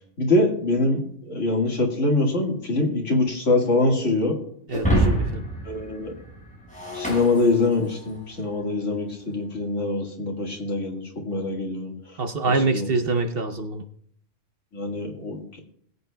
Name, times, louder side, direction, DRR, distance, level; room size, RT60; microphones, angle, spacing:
voice 1, 0.2-4.4 5.7-6.1 6.9-11.9 12.5-12.9 14.7-15.6, left 2 dB, 65° left, 0 dB, 2.2 m, -24 dB
Shatter, 4.7-8.2, right 1 dB, 5° left, 5.5 m, -26 dB
voice 2, 4.7-5.4 12.2-13.8, right 3 dB, 50° right, 7 dB, 0.9 m, -25 dB
21.5 x 8.3 x 2.3 m, 0.68 s
omnidirectional pair, 1.3 m